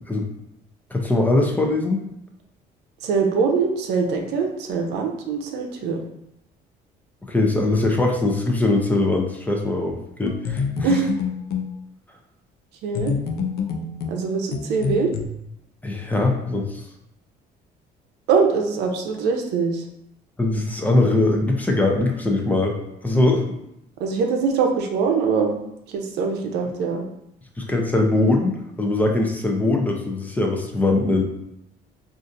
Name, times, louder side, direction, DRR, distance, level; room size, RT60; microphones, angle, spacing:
voice 1, 0.9-2.0 7.3-10.9 15.8-16.8 20.4-22.8 23.0-23.4 27.6-28.5 28.8-31.2, left 2 dB, 10° left, 1 dB, 0.5 m, -21 dB
voice 2, 3.0-6.0 10.8-11.0 12.8-13.1 14.1-15.1 18.3-19.8 24.0-25.6 25.9-27.0, right 5 dB, 85° right, 3 dB, 0.6 m, -23 dB
sound 1, 10.3-11.7 12.9-15.3, left 6 dB, 70° left, 0.5 m, -27 dB
3.9 x 2.5 x 2.5 m, 0.80 s
cardioid pair, 110°, 17 cm